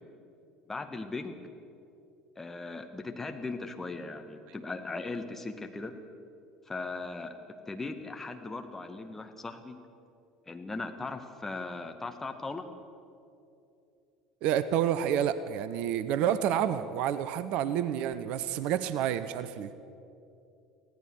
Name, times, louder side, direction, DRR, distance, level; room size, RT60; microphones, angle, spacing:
voice 1, 0.7-1.4 2.4-5.9 6.7-7.4 7.7-9.8 10.5-12.7, left 3 dB, 15° left, 6 dB, 1.9 m, -38 dB
voice 2, 14.4-19.7, right 10 dB, 55° right, 14 dB, 0.8 m, -29 dB
24.5 x 17.0 x 6.4 m, 2.7 s
figure-of-eight pair, 65°, 2 cm